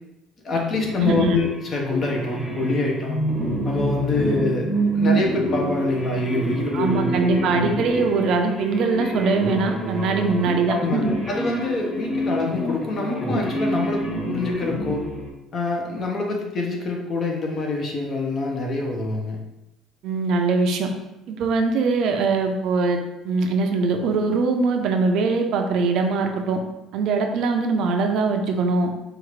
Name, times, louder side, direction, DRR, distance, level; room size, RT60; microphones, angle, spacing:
voice 1, 0.4-3.2 3.6-4.7 4.9-7.8 10.7-15.0 15.5-19.4, left 2 dB, 40° left, 0 dB, 0.9 m, -25 dB
sound 1, 0.7-15.3, right 1 dB, 15° left, 0.8 m, -27 dB
voice 2, 1.0-1.4 6.7-11.1 20.0-20.9 21.3-23.0 23.2-26.6 26.9-28.9, right 4 dB, 65° right, 4 dB, 0.5 m, -22 dB
4.9 x 2.5 x 3.1 m, 0.92 s
cardioid pair, 125°, 0 cm